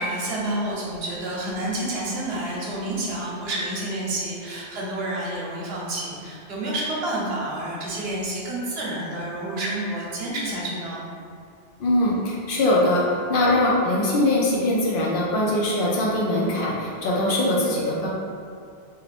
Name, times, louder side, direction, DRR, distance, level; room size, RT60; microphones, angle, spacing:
voice 1, 0.0-11.1, right 1 dB, 70° right, -5 dB, 0.9 m, -29 dB
voice 2, 11.8-13.0 13.3-18.1, left 1 dB, 60° left, -5 dB, 0.7 m, -22 dB
2.5 x 2.5 x 3.3 m, 2.3 s
omnidirectional pair, 1.1 m